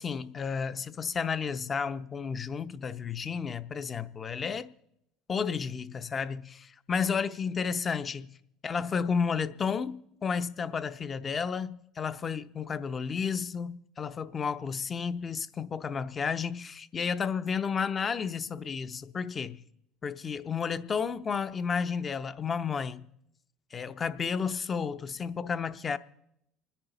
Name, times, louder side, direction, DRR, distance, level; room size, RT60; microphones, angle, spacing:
voice 1, 0.0-4.7 5.3-8.3 8.6-19.6 20.0-23.1 23.7-26.0, left 6 dB, 30° left, 0.7 m, -32 dB
27.5 x 10.0 x 4.0 m
supercardioid pair, 95°, 0 cm